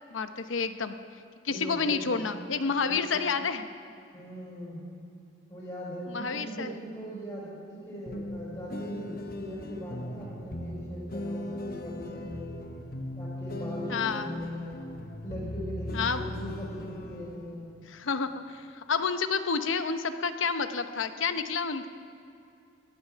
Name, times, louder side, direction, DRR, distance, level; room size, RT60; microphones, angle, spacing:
voice 1, 0.1-1.0 1.4-3.7 6.1-6.7 13.9-14.3 15.9-16.2 17.9-21.9, left 5 dB, 85° left, 9 dB, 0.8 m, -29 dB
voice 2, 1.5-2.2 2.8-3.2 4.1-4.8 5.5-12.7 13.2-14.9 15.2-17.7, equal, 25° left, -6 dB, 4.7 m, -40 dB
sound 1, 8.1-17.5, left 1 dB, 50° left, 1.0 m, -38 dB
18.0 x 11.5 x 5.7 m, 2.6 s
head